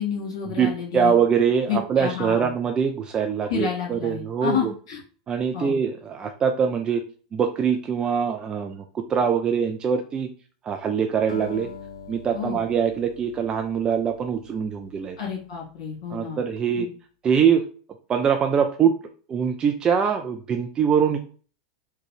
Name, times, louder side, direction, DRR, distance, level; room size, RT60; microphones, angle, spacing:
voice 1, 0.0-1.1 1.7-2.5 3.5-5.0 5.5-5.7 12.3-12.6 15.2-16.4 16.8-16.9, left 7 dB, 65° left, -4 dB, 1.8 m, -29 dB
voice 2, 0.6-4.7 5.3-7.0 7.3-10.3 10.6-11.7 12.1-15.2 16.1-16.9 17.2-17.6 18.1-18.9 19.3-21.2, right 7 dB, 30° right, 6 dB, 0.4 m, -23 dB
Acoustic guitar, 11.3-15.7, left 6 dB, 80° left, 0.5 m, -43 dB
3.8 x 2.2 x 3.2 m, 0.40 s
hypercardioid pair, 90°, 3 cm